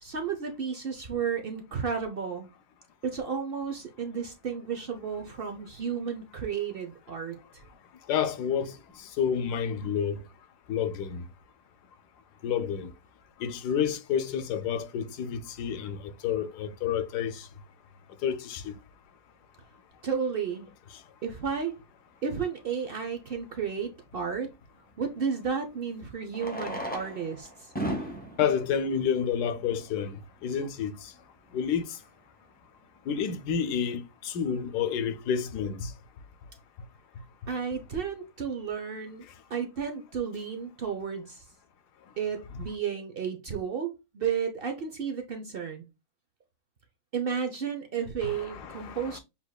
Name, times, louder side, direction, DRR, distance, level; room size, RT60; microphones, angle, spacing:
voice 1, 0.0-2.5 3.0-7.4 20.0-20.7 21.2-21.8 22.2-24.5 25.0-27.7 37.5-41.4 42.2-45.9 47.1-49.2, right 6 dB, 55° right, 0.6 m, -32 dB
voice 2, 8.1-10.2 10.7-11.2 12.4-12.9 13.4-17.5 18.2-18.7 28.4-31.1 31.5-32.0 33.1-35.9 48.2-49.2, left 7 dB, 80° left, 1.2 m, -30 dB
Fireworks, 22.7-22.8 25.1-25.2 26.3-30.0 30.8-30.9 31.1-31.2 31.4-31.5 32.0-32.2, equal, 10° left, 0.4 m, -37 dB
7.1 x 3.0 x 2.3 m
omnidirectional pair, 1.7 m